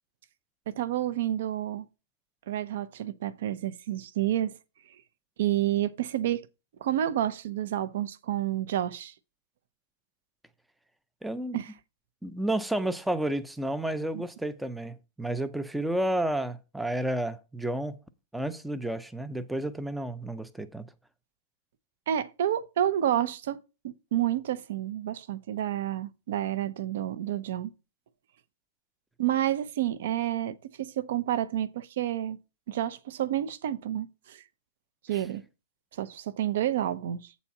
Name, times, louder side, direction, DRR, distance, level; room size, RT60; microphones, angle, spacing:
voice 1, 0.7-1.9 2.5-4.6 5.4-6.4 6.8-9.1 11.5-11.7 14.1-14.2 22.1-23.6 23.8-27.7 29.2-32.4 32.7-34.4 35.0-35.4 35.9-37.3, right 11 dB, 60° right, 0.7 m, -29 dB
voice 2, 11.2-11.6 12.2-18.0 18.3-20.9 35.1-35.2, right 1 dB, ahead, 0.4 m, -31 dB
8.2 x 4.1 x 5.9 m
supercardioid pair, 170°, 0 cm